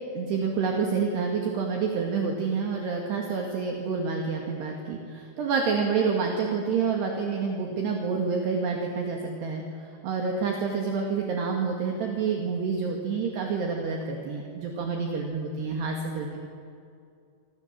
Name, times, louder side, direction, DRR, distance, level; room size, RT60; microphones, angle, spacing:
voice 1, 0.1-16.4, right 5 dB, 60° right, 1 dB, 3.9 m, -28 dB
29.0 x 26.0 x 7.6 m, 2.5 s
omnidirectional pair, 6.0 m